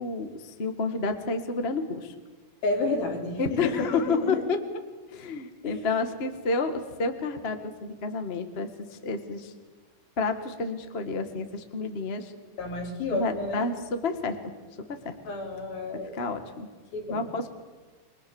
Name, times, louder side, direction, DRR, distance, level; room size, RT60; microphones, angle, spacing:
voice 1, 0.0-2.1 3.4-4.6 5.1-8.7 9.0-9.5 10.2-12.3 13.1-14.4 15.0-15.1 16.1-16.7 17.1-17.5, left 3 dB, 35° left, 7 dB, 1.0 m, -30 dB
voice 2, 2.6-4.4 5.6-5.9 12.6-13.7 15.3-16.2 16.9-17.2, left 3 dB, 80° left, 1 dB, 5.5 m, -31 dB
29.0 x 23.5 x 7.2 m, 1.3 s
omnidirectional pair, 4.2 m